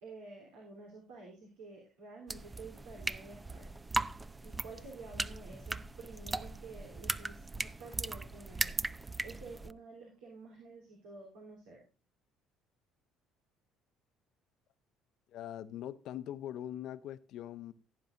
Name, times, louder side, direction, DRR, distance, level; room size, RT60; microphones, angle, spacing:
voice 1, 0.0-3.7 4.4-8.7 9.2-11.8, right 3 dB, 75° right, 3.4 m, -50 dB
sound 1, 2.3-9.7, right 2 dB, 20° right, 0.5 m, -38 dB
voice 2, 15.3-17.7, left 11 dB, 65° left, 0.8 m, -42 dB
17.0 x 9.0 x 2.5 m
hypercardioid pair, 55°, 0 cm